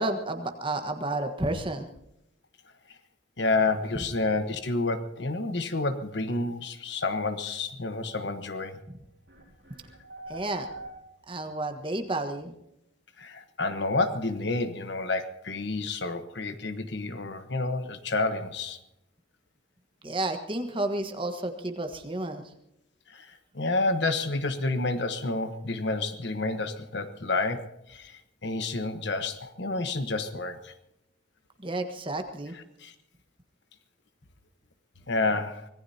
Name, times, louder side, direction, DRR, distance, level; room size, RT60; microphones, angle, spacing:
voice 1, 0.0-1.9 10.3-10.7 11.3-12.5 20.0-22.4 31.6-32.5, right 2 dB, 25° right, 6 dB, 1.4 m, -31 dB
voice 2, 3.4-8.8 13.2-18.8 23.1-23.3 23.5-30.7 32.5-32.9 35.1-35.7, left 3 dB, 65° left, 9 dB, 1.2 m, -29 dB
sound 1, 9.3-11.5, right 2 dB, 60° right, 7.6 m, -44 dB
25.0 x 18.5 x 2.9 m, 0.82 s
head